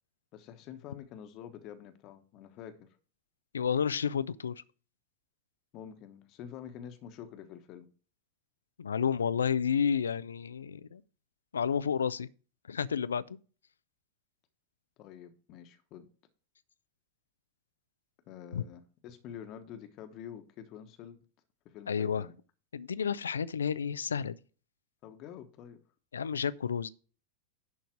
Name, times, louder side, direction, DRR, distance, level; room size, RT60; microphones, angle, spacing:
voice 1, 0.3-2.9 5.7-7.9 15.0-16.1 18.3-21.2 21.6-22.4 25.0-25.8, left 9 dB, 40° left, 1.1 m, -47 dB
voice 2, 3.5-4.6 8.8-11.0 11.5-12.3 12.7-13.4 18.5-18.6 21.9-22.3 22.7-24.4 26.1-26.9, left 7 dB, 70° left, 0.4 m, -31 dB
11.0 x 3.9 x 6.2 m
figure-of-eight pair, 90°, 0 cm